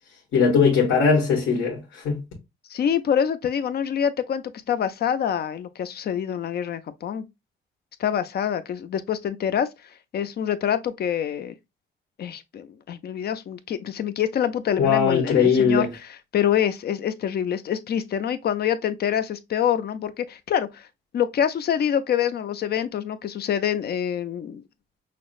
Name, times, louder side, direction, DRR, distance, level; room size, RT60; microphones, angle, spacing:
voice 1, 0.3-2.2 14.8-15.9, left 6 dB, 80° left, 1.3 m, -20 dB
voice 2, 2.7-7.2 8.0-9.7 10.1-11.5 12.2-15.9 16.3-20.9 21.1-24.6, left 9 dB, 55° left, 0.5 m, -26 dB
5.8 x 2.1 x 2.4 m
cardioid pair, 90°, 20 cm